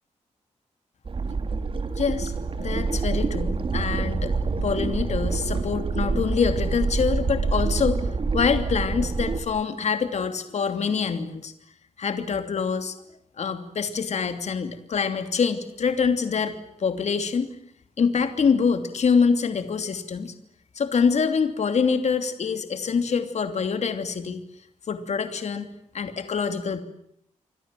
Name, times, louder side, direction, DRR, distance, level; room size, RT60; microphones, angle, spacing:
sound 1, 1.1-9.4, right 4 dB, 45° right, 3.3 m, -26 dB
voice 1, 2.0-4.3 4.6-8.1 8.3-11.5 12.0-13.0 13.4-17.5 18.0-20.3 20.7-24.4 24.9-26.8, left 5 dB, 60° left, 8 dB, 2.9 m, -25 dB
29.0 x 25.0 x 7.7 m, 0.74 s
wide cardioid pair, 140°, 13 cm